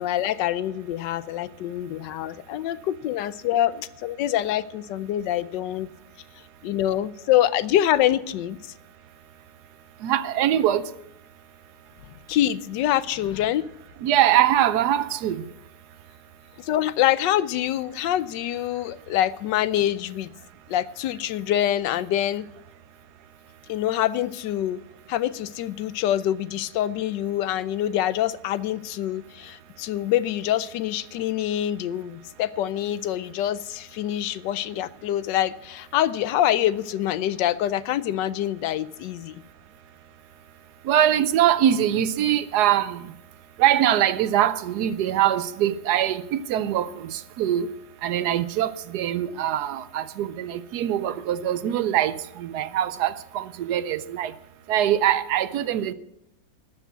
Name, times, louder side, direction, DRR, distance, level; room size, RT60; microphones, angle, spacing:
voice 1, 0.0-5.9 6.6-8.7 12.3-13.6 16.6-20.3 20.7-22.5 23.7-24.8 25.1-39.4, left 12 dB, 90° left, 1.3 m, -25 dB
voice 2, 10.0-10.8 14.0-15.4 40.8-43.0 43.6-47.7 48.0-54.3 54.7-55.9, right 11 dB, 70° right, 1.1 m, -23 dB
13.0 x 7.1 x 8.1 m
omnidirectional pair, 1.9 m